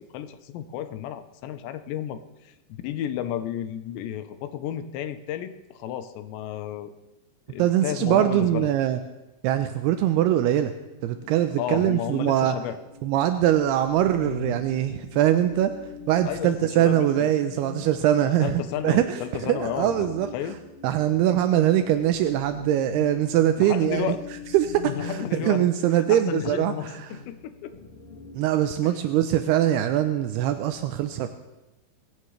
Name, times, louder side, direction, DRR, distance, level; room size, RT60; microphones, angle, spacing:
voice 1, 0.0-6.9 7.5-8.7 11.6-12.8 16.3-17.3 18.4-20.6 23.6-24.2 24.9-25.7 26.1-27.7 28.8-29.0, left 10 dB, 80° left, 10 dB, 3.0 m, -32 dB
voice 2, 7.6-9.0 9.4-10.7 11.0-12.6 13.0-15.7 16.1-20.3 20.8-24.2 24.5-27.1 28.3-31.3, right 12 dB, 85° right, 8 dB, 2.4 m, -22 dB
sound 1, 10.0-28.3, left 3 dB, 50° left, 1.8 m, -42 dB
23.0 x 15.5 x 3.3 m, 1.0 s
omnidirectional pair, 5.3 m